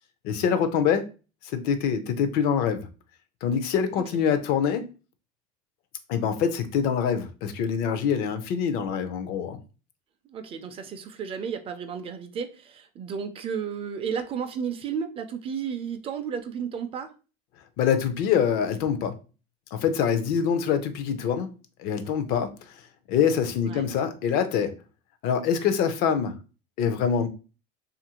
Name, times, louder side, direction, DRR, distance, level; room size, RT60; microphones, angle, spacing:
voice 1, 0.2-1.0 1.5-2.9 3.4-4.8 6.1-9.6 17.8-19.1 19.7-21.5 21.8-22.5 23.1-24.7 25.2-26.4 26.8-27.3, left 7 dB, 60° left, 0.5 m, -25 dB
voice 2, 10.2-17.1 23.6-23.9, right 7 dB, 30° right, 0.4 m, -33 dB
2.7 x 2.5 x 2.8 m
supercardioid pair, 120°, 18 cm